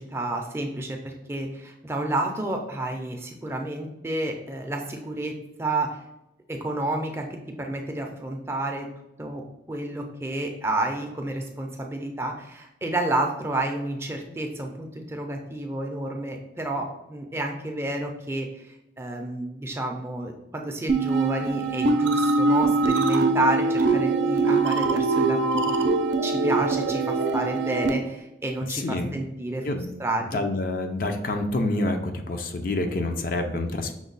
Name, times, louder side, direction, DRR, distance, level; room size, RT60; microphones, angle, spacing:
voice 1, 0.0-6.0 6.5-8.9 9.2-9.4 9.7-25.7 26.2-29.7 30.0-30.4, right 2 dB, 15° right, 2 dB, 0.4 m, -30 dB
sound 1, 20.9-27.9, right 3 dB, 85° right, 0.5 m, -23 dB
voice 2, 28.7-29.1 29.6-29.9 30.3-33.9, left 2 dB, 50° left, 5 dB, 0.5 m, -27 dB
5.9 x 2.2 x 3.9 m, 0.87 s
head